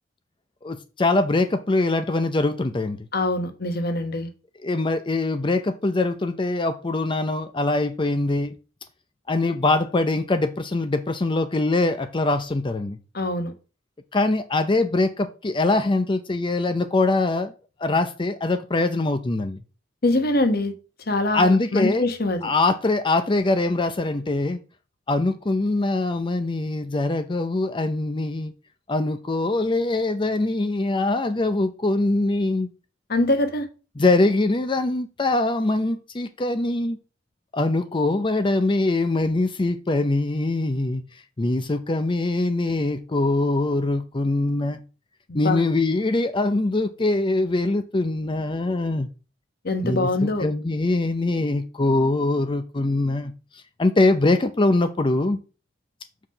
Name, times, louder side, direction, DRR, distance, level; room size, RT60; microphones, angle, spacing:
voice 1, 0.6-3.1 4.6-8.6 9.3-13.0 14.1-17.5 17.8-19.6 21.3-22.1 22.4-24.6 25.1-28.5 28.9-32.7 34.0-37.0 37.5-44.8 45.3-49.1 49.8-50.1 50.4-55.4, left 2 dB, 25° left, 0.6 m, -23 dB
voice 2, 3.1-4.3 13.1-13.5 20.0-20.7 21.1-22.4 33.1-33.7 45.3-45.6 49.6-50.5, left 2 dB, 55° left, 1.3 m, -23 dB
5.7 x 4.7 x 6.5 m
head